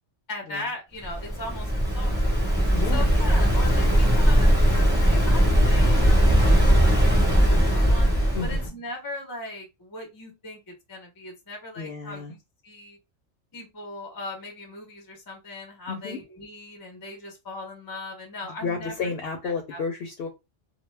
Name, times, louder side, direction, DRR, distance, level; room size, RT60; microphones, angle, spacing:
voice 1, 0.3-2.3 2.9-8.1 8.4-13.0 13.5-19.1 19.4-19.8, left 2 dB, 30° left, 1 dB, 0.4 m, -39 dB
Waves surf, 1.0-8.7, equal, 10° right, 0.8 m, -19 dB
voice 2, 2.7-3.1 8.3-8.7 11.8-12.3 15.9-16.2 18.5-20.3, left 5 dB, 65° left, 4 dB, 0.7 m, -32 dB
2.1 x 2.1 x 3.2 m, 0.25 s
omnidirectional pair, 1.3 m